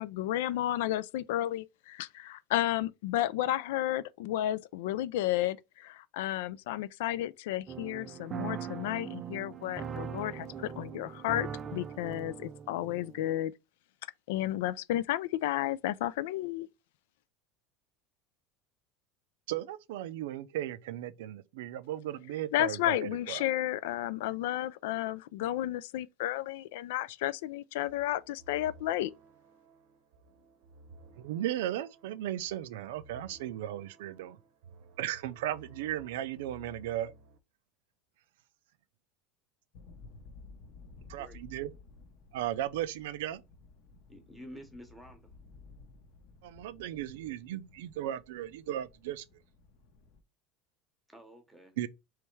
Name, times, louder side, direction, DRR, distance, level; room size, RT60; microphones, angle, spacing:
voice 1, 0.0-13.5 14.3-16.7 22.5-29.1, left 14 dB, 75° left, 0.3 m, -32 dB
sound 1, 7.7-13.3, right 7 dB, 20° right, 0.4 m, -41 dB
voice 2, 19.5-23.4 31.2-34.4 35.0-37.1 41.1-41.7 42.3-43.4 46.4-49.2 51.8-51.9, right 12 dB, 85° right, 0.4 m, -36 dB
sound 2, 27.9-37.4, right 2 dB, 55° right, 0.7 m, -56 dB
sound 3, 39.7-50.2, left 3 dB, 45° left, 0.7 m, -55 dB
voice 3, 41.0-41.4 44.1-45.3 51.1-51.7, equal, 5° right, 0.9 m, -50 dB
3.4 x 3.1 x 4.5 m
cardioid pair, 180°, 0 cm